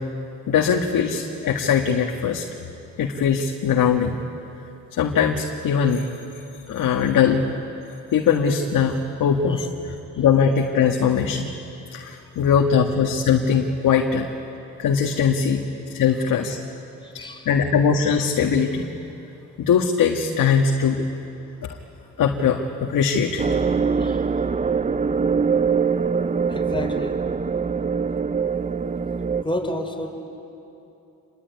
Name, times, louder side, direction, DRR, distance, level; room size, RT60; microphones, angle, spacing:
voice 1, 0.5-2.5 3.0-4.2 4.9-6.1 6.7-7.4 8.1-9.7 10.2-11.5 11.9-14.2 14.8-15.6 15.9-16.6 17.1-18.9 19.7-21.0 21.6-21.8 22.2-23.5, left 7 dB, 65° left, 2 dB, 1.9 m, -21 dB
voice 2, 17.2-17.5 24.0-24.2 26.5-27.1 29.4-30.1, left 1 dB, 15° left, 3 dB, 4.7 m, -30 dB
sound 1, 23.4-29.4, right 5 dB, 20° right, 0.7 m, -23 dB
26.5 x 21.5 x 9.7 m, 2.9 s
cardioid pair, 85°, 35 cm